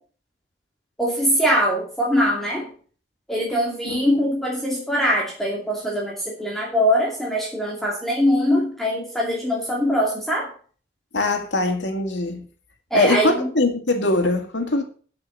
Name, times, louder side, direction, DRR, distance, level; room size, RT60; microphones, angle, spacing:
voice 1, 1.0-2.7 3.3-10.5 12.9-13.5, equal, ahead, -4 dB, 2.5 m, -22 dB
voice 2, 3.9-4.2 11.1-12.4 12.9-14.8, left 2 dB, 90° left, 4 dB, 2.1 m, -22 dB
7.9 x 6.9 x 7.2 m, 0.43 s
head